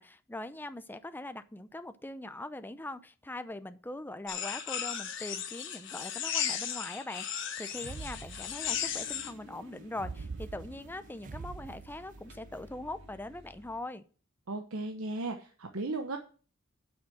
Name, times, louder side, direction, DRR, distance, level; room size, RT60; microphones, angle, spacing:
voice 1, 0.0-14.0, left 1 dB, 10° left, 11 dB, 0.7 m, -42 dB
sound 1, 4.3-9.3, left 9 dB, 65° left, 1.7 m, -35 dB
sound 2, 7.8-8.9 9.9-12.4, right 4 dB, 40° right, 0.4 m, -44 dB
sound 3, 8.6-13.8, equal, 65° right, 2.2 m, -54 dB
voice 2, 14.5-16.2, right 2 dB, 90° right, 4 dB, 1.1 m, -36 dB
8.0 x 6.2 x 7.8 m, 0.40 s
head